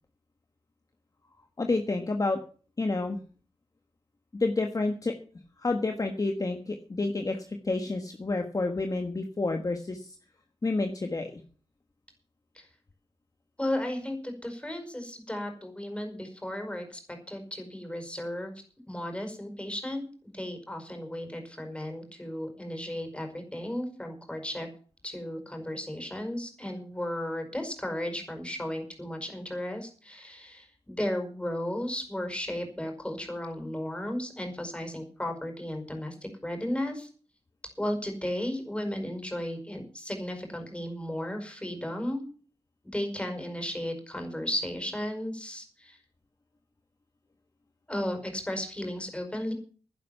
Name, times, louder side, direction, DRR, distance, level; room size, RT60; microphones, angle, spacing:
voice 1, 1.6-2.4 2.8-3.2 4.3-5.1 5.6-10.2 10.6-11.4, left 3 dB, 35° left, 5 dB, 1.5 m, -29 dB
voice 2, 13.6-17.0 17.3-18.5 18.9-20.0 20.3-24.7 25.0-37.1 37.8-42.2 42.8-46.0 47.9-49.5, left 1 dB, 10° left, 4 dB, 5.1 m, -34 dB
11.0 x 10.5 x 7.1 m, 0.40 s
wide cardioid pair, 90°, 10 cm